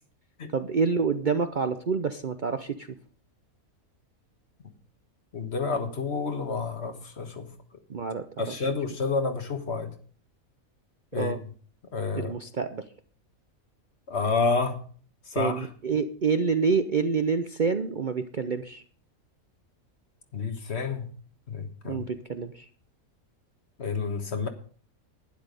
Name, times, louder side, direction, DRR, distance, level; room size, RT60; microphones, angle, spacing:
voice 1, 0.5-2.9 7.9-8.7 11.2-11.4 12.2-12.9 15.3-18.8 21.8-22.6, right 5 dB, 45° right, 9 dB, 0.6 m, -27 dB
voice 2, 5.3-7.5 8.4-9.9 11.1-11.3 11.9-12.3 14.1-14.8 15.3-15.6 20.3-21.0 21.5-22.0 23.8-24.5, left 4 dB, 50° left, 8 dB, 1.6 m, -29 dB
11.5 x 10.5 x 5.2 m, 0.43 s
omnidirectional pair, 1.5 m